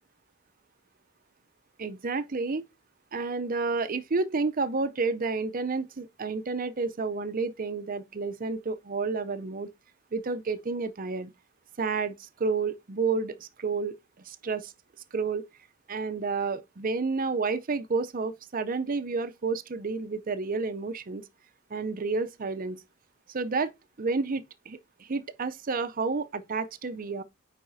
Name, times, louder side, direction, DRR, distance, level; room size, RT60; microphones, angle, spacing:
voice 1, 1.8-2.7 3.1-9.7 10.1-11.3 11.8-14.0 14.2-14.7 15.1-15.4 15.9-21.2 21.7-22.8 23.3-23.7 24.0-27.2, right 4 dB, 40° right, 0.5 m, -30 dB
9.4 x 4.1 x 2.6 m
head